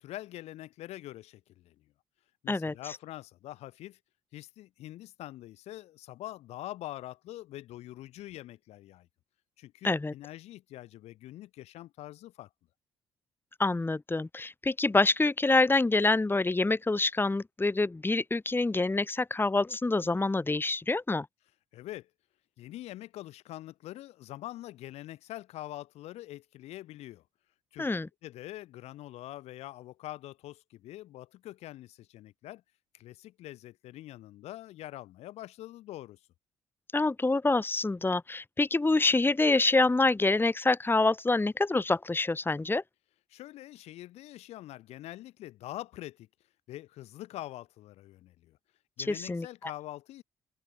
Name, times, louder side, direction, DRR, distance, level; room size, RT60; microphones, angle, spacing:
voice 1, 0.0-1.9 2.4-4.0 4.3-9.1 9.6-12.5 21.7-22.1 22.6-27.2 27.7-27.9 28.2-32.6 32.9-36.2 43.3-46.3 46.7-48.6 49.0-50.2, left 15 dB, 70° left, 7.4 m, -44 dB
voice 2, 13.6-21.3 27.8-28.1 36.9-42.8 49.1-49.5, left 3 dB, 20° left, 1.8 m, -26 dB
hypercardioid pair, 50°, 11 cm